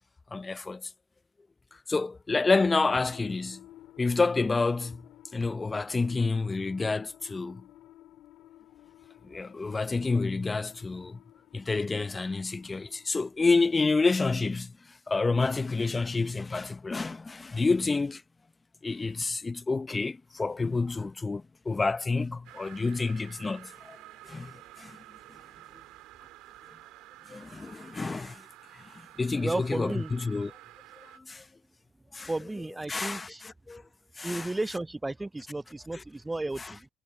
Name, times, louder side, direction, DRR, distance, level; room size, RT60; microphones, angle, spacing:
voice 1, 0.3-0.9 1.9-3.6 4.0-5.1 5.3-7.6 9.2-11.2 11.5-18.2 18.8-24.0 24.2-25.0 27.3-28.4 28.7-30.5 31.0-31.5 32.1-32.3 32.9-33.8 34.2-34.5 35.9-36.0 36.6-36.7, left 3 dB, 25° left, 0.7 m, -29 dB
sound 1, 3.1-13.2, left 14 dB, 75° left, 2.7 m, -54 dB
sound 2, 22.4-31.2, right 17 dB, 80° right, 3.5 m, -51 dB
voice 2, 29.4-30.1 32.3-33.4 34.2-36.9, right 2 dB, 15° right, 0.4 m, -33 dB
supercardioid pair, 70°, 0 cm